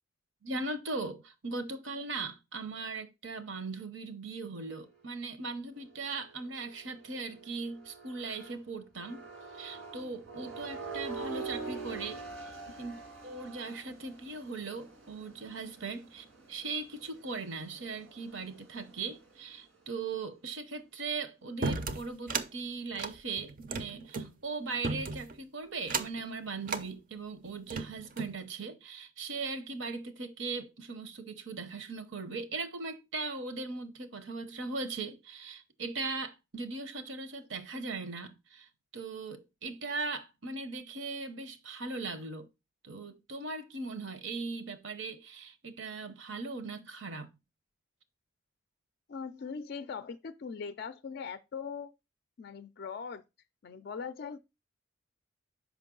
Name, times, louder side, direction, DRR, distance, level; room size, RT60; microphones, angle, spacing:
voice 1, 0.4-9.3 9.5-42.5 42.8-47.3, right 3 dB, 65° right, 0.9 m, -39 dB
sound 1, 5.7-8.6 9.0-19.4, right 4 dB, 90° right, 2.2 m, -45 dB
sound 2, 21.6-22.5 22.9-24.3 24.8-25.3 25.8-26.2 26.6-26.9 27.5-28.4, right 4 dB, 40° right, 0.5 m, -34 dB
voice 2, 49.1-51.9 52.4-53.2 53.6-54.4, left 5 dB, 50° left, 0.4 m, -40 dB
5.9 x 5.3 x 3.8 m
head